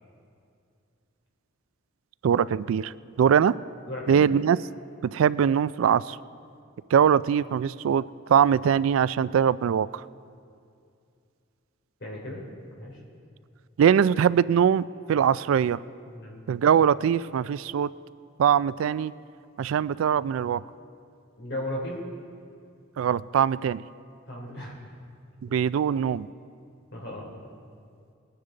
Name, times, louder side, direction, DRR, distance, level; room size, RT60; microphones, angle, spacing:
voice 1, 2.2-3.5 4.1-4.6 5.0-6.2 6.9-8.0 8.3-10.0 13.8-15.8 16.5-17.9 18.4-19.1 19.6-20.6 23.0-23.8 25.4-26.3, right 8 dB, 90° right, 18 dB, 0.3 m, -22 dB
voice 2, 3.9-4.3 12.0-12.4 12.8-13.0 16.0-16.3 21.4-22.0 24.3-24.8 26.9-27.3, left 1 dB, 60° left, -2 dB, 3.2 m, -35 dB
20.5 x 9.8 x 3.9 m, 2.4 s
head